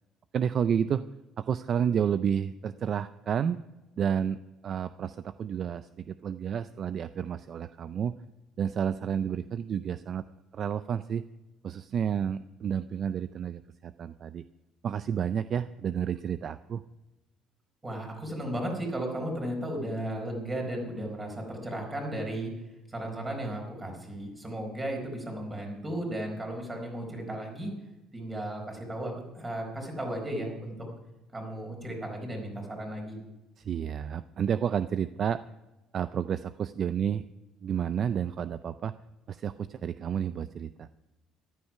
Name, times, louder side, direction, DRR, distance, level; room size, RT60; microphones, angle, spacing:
voice 1, 0.3-1.0 1.4-3.6 4.0-8.1 8.6-10.3 10.5-11.2 11.6-14.4 14.8-16.8 33.6-35.4 35.9-37.2 37.6-38.9 39.3-40.9, right 8 dB, 45° right, 13 dB, 0.4 m, -30 dB
voice 2, 17.8-22.5 22.9-27.7 28.1-30.8 31.3-33.2, right 1 dB, 20° right, 2 dB, 4.4 m, -35 dB
14.0 x 12.0 x 5.8 m, 1.0 s
cardioid pair, 130°, 0 cm